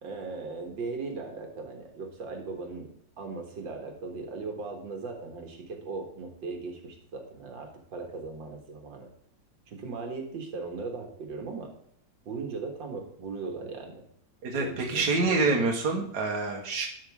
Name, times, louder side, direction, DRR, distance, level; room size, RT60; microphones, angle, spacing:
voice 1, 0.0-2.9 3.2-9.1 9.7-11.7 12.3-14.0 14.5-15.7, right 4 dB, 80° right, 3 dB, 2.4 m, -38 dB
voice 2, 14.4-16.9, right 3 dB, 60° right, 0 dB, 1.8 m, -26 dB
11.5 x 6.0 x 3.5 m, 0.68 s
omnidirectional pair, 2.0 m